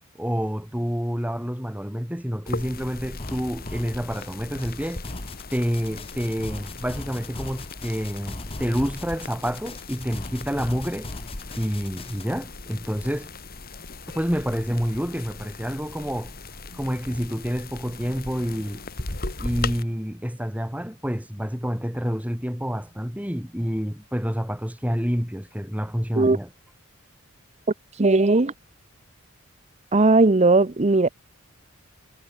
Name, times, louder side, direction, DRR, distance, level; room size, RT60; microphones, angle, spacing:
voice 1, 0.2-5.0 5.5-11.1 11.6-13.3 14.1-16.3 16.8-18.8 19.4-26.5, equal, 5° right, 4.2 m, -28 dB
sound 1, 2.5-19.8, left 3 dB, 45° left, 2.7 m, -38 dB
sound 2, 3.2-12.2, left 2 dB, 25° left, 1.6 m, -39 dB
voice 2, 27.9-28.5 29.9-31.1, right 3 dB, 30° right, 0.8 m, -18 dB
head